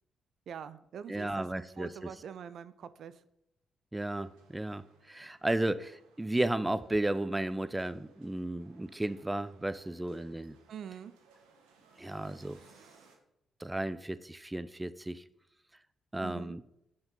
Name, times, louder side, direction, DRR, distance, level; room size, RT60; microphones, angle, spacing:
voice 1, 0.5-3.2 10.7-11.1 16.1-16.6, right 8 dB, 65° right, 14 dB, 0.5 m, -45 dB
voice 2, 1.1-2.1 3.9-10.6 12.0-12.6 13.6-15.2 16.1-16.6, right 1 dB, 15° right, 16 dB, 0.5 m, -34 dB
sound 1, 3.9-13.2, right 5 dB, 85° right, 1.3 m, -63 dB
7.7 x 6.9 x 3.9 m, 0.81 s
hypercardioid pair, 45°, 0 cm